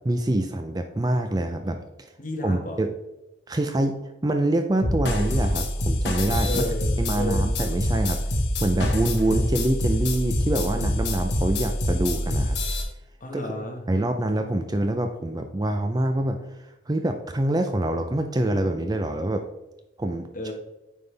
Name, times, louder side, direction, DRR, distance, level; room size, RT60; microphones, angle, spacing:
voice 1, 0.0-2.1 2.4-2.9 3.5-6.6 7.0-8.3 8.6-12.6 13.3-13.4 13.9-16.4 16.9-19.5 20.0-20.3, right 1 dB, 20° right, 6 dB, 0.4 m, -25 dB
voice 2, 2.2-2.8 6.4-7.5 13.2-13.8 20.3-20.5, left 1 dB, 40° left, 1 dB, 1.5 m, -32 dB
sound 1, 4.8-12.8, left 1 dB, 60° left, 1.6 m, -25 dB
9.4 x 5.5 x 3.4 m, 1.0 s
head